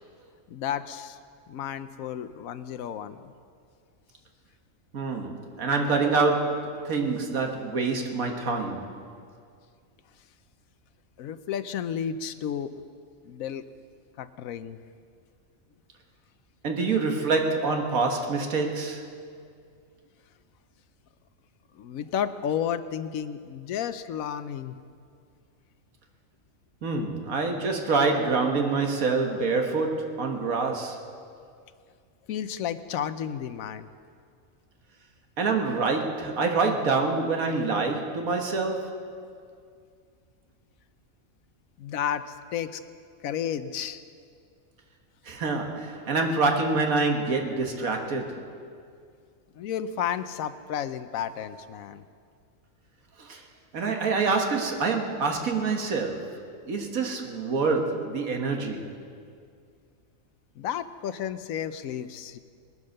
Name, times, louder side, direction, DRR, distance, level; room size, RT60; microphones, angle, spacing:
voice 1, 0.5-1.2 1.5-3.3 11.2-12.7 13.2-13.6 14.2-14.8 21.8-24.8 32.3-33.9 41.8-42.8 43.2-44.0 49.6-52.0 60.6-62.4, left 9 dB, 80° left, 12 dB, 1.1 m, -32 dB
voice 2, 4.9-9.0 16.6-19.1 26.8-31.1 35.4-39.1 45.3-48.5 53.2-53.4 53.7-58.9, right 4 dB, 85° right, 3 dB, 1.8 m, -26 dB
20.5 x 9.5 x 6.5 m, 2.2 s
omnidirectional pair, 1.4 m